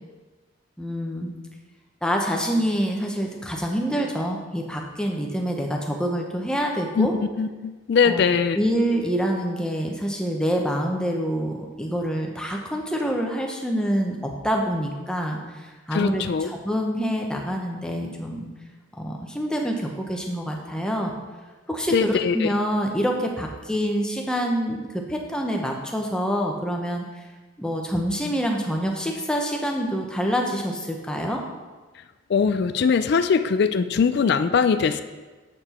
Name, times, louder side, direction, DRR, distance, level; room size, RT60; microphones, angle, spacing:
voice 1, 0.8-1.3 2.0-7.1 8.0-8.2 8.5-18.5 18.9-21.2 21.7-27.0 27.6-31.4, equal, 5° left, 1 dB, 0.8 m, -26 dB
voice 2, 7.4-8.6 15.9-16.5 21.9-22.5 32.3-35.0, left 6 dB, 55° left, 10 dB, 0.3 m, -21 dB
7.5 x 6.9 x 4.3 m, 1.3 s
head